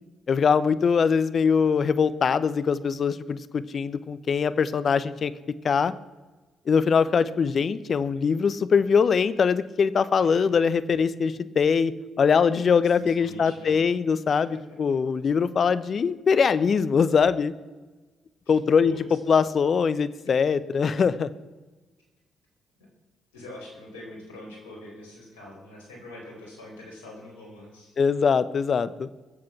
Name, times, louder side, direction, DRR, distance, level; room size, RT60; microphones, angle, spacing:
voice 1, 0.3-5.3 5.6-5.9 6.7-11.9 12.2-17.5 18.5-21.3 28.0-29.1, left 6 dB, 50° left, 15 dB, 0.8 m, -22 dB
voice 2, 12.8-13.9 14.3-14.6 18.4-18.5 18.8-19.4 20.2-20.3 23.3-27.9, left 1 dB, 90° left, -1 dB, 4.3 m, -44 dB
21.5 x 7.6 x 6.1 m, 1.2 s
hypercardioid pair, 50°, 0 cm